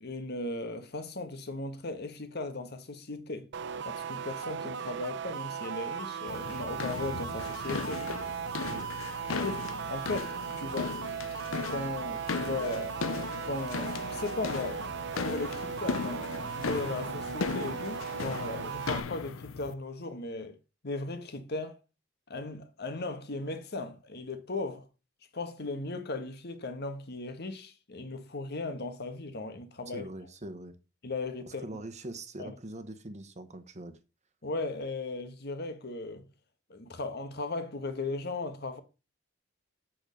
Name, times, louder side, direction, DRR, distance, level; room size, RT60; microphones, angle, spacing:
voice 1, 0.0-3.5 3.8-8.1 9.3-10.9 11.5-13.0 13.4-14.9 15.2-20.6 20.8-21.8 22.3-24.8 25.3-30.1 31.0-31.6 32.4-32.5 34.4-36.2 36.7-38.8, left 3 dB, 55° left, 1.3 m, -37 dB
sound 1, 3.5-19.0, right 7 dB, 60° right, 0.7 m, -37 dB
sound 2, 6.3-19.7, left 5 dB, 85° left, 0.6 m, -37 dB
voice 2, 29.9-30.8 31.4-34.0, right 1 dB, 35° right, 1.2 m, -43 dB
7.6 x 6.4 x 5.1 m
head